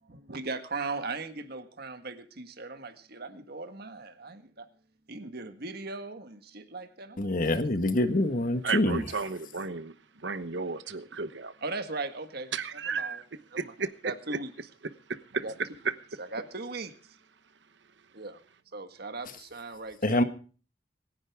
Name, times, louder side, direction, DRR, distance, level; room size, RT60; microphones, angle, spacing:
voice 1, 0.1-4.6 5.1-7.6 11.6-12.5 12.8-13.2 13.5-13.7 14.0-14.5 15.4-15.5 16.2-16.9 18.1-18.4 18.7-20.2, right 3 dB, 60° right, 1.7 m, -38 dB
voice 2, 7.2-9.0 20.0-20.2, left 1 dB, 50° left, 1.5 m, -25 dB
voice 3, 8.6-11.6 12.5-13.2 13.5-14.4 15.1-15.4, right 5 dB, 75° right, 1.0 m, -34 dB
26.0 x 10.5 x 3.6 m
head